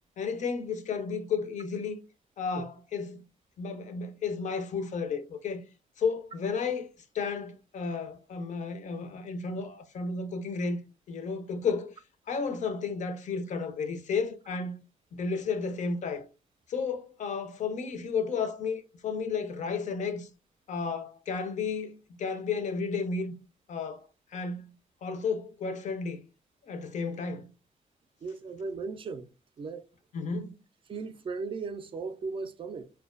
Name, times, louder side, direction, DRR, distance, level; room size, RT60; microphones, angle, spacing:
voice 1, 0.2-2.0 2.4-3.2 3.6-5.6 6.0-6.9 7.1-10.8 11.1-11.9 12.3-14.8 15.1-16.3 16.7-20.3 20.7-23.3 23.7-24.0 24.3-24.7 25.0-26.2 26.7-27.5 30.1-30.5, left 5 dB, 55° left, 0.5 m, -32 dB
voice 2, 28.2-29.3 29.6-29.9 30.3-30.4 30.9-32.9, right 4 dB, 35° right, 0.4 m, -37 dB
2.4 x 2.2 x 2.3 m
cardioid pair, 100°, 15 cm